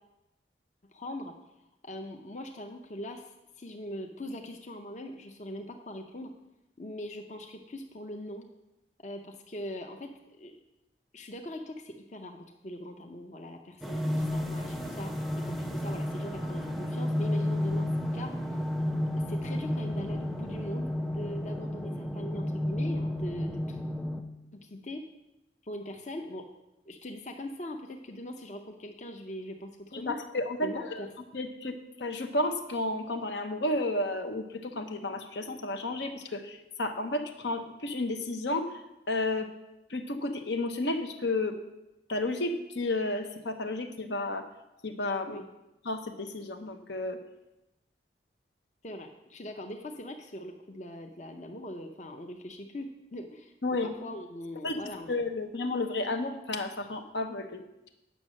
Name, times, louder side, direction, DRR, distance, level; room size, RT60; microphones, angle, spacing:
voice 1, 0.9-1.3 1.8-6.3 6.8-8.5 9.0-10.6 11.1-15.1 15.4-18.3 19.3-23.8 24.5-25.1 25.6-26.4 26.9-30.2 30.6-31.1 45.3-45.4 48.8-53.5 53.8-55.1, left 1 dB, 40° left, 4 dB, 0.6 m, -41 dB
sound 1, 13.8-24.2, left 1 dB, ahead, 0.5 m, -32 dB
voice 2, 29.9-31.1 31.3-38.8 39.1-39.5 39.9-41.6 42.1-44.5 44.8-45.4 45.8-47.2 53.6-53.9 54.6-54.8 55.1-57.6, left 2 dB, 80° left, 6 dB, 1.0 m, -32 dB
9.3 x 6.2 x 6.3 m, 0.93 s
head